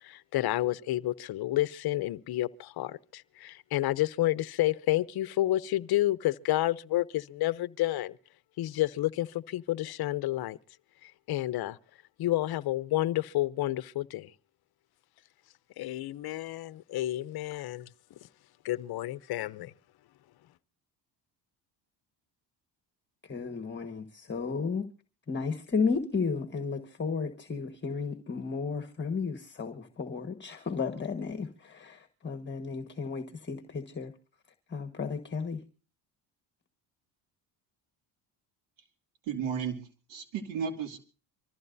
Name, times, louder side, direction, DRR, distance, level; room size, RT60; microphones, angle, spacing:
voice 1, 0.0-8.2 8.6-10.6 11.0-11.8 12.2-14.3 15.8-17.9 18.6-19.7, left 15 dB, 60° left, 0.7 m, -30 dB
voice 2, 23.2-24.9 25.3-34.1 34.7-35.6, left 5 dB, 25° left, 1.5 m, -33 dB
voice 3, 39.3-39.8 40.1-41.0, right 7 dB, 85° right, 2.6 m, -33 dB
25.5 x 14.5 x 2.7 m
supercardioid pair, 85°, 44 cm